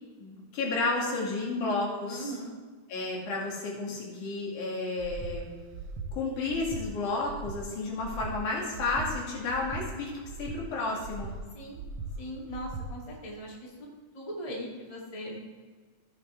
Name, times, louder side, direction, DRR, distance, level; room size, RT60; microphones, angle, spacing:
voice 1, 0.2-2.3 2.9-5.5 6.1-11.3, left 3 dB, 80° left, -3 dB, 3.6 m, -32 dB
voice 2, 2.1-2.5 11.5-11.8 12.2-13.7 14.1-15.4, equal, 15° left, -3 dB, 1.7 m, -39 dB
Breathing, 5.0-5.4 5.7-6.1 6.5-6.8 7.2-7.6 8.0-8.3 8.7-9.1 9.5-9.8 10.2-10.6 11.0-11.4 11.7-12.1 12.5-12.9, right 5 dB, 70° right, 1.9 m, -39 dB
16.0 x 7.0 x 3.5 m, 1.5 s
omnidirectional pair, 3.5 m